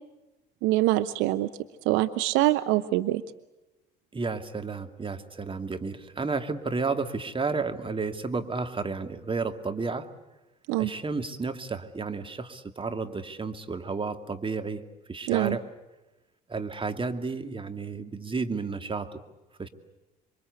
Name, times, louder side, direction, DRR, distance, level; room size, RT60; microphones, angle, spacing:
voice 1, 0.6-1.5 1.9-3.2 10.7-10.9 15.3-15.6, right 17 dB, 75° right, 12 dB, 0.9 m, -24 dB
voice 2, 4.1-10.1 10.8-14.8 15.1-15.6 16.5-19.2 19.6-19.7, right 4 dB, 25° right, 7 dB, 2.5 m, -32 dB
27.5 x 23.5 x 8.3 m, 1.0 s
hypercardioid pair, 60°, 20 cm